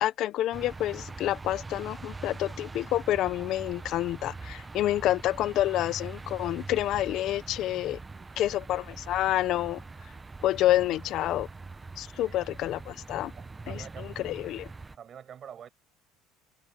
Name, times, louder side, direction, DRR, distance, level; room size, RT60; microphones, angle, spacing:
voice 1, 0.0-8.0 8.4-9.8 10.4-11.5 12.0-13.3 13.7-14.7, left 14 dB, 55° left, 0.6 m, -28 dB
sound 1, 0.5-15.0, right 3 dB, 15° right, 0.8 m, -43 dB
voice 2, 8.1-8.6 12.2-12.4 13.4-14.2 15.0-15.7, right 9 dB, 35° right, 7.5 m, -47 dB
cardioid pair, 130°, 0 cm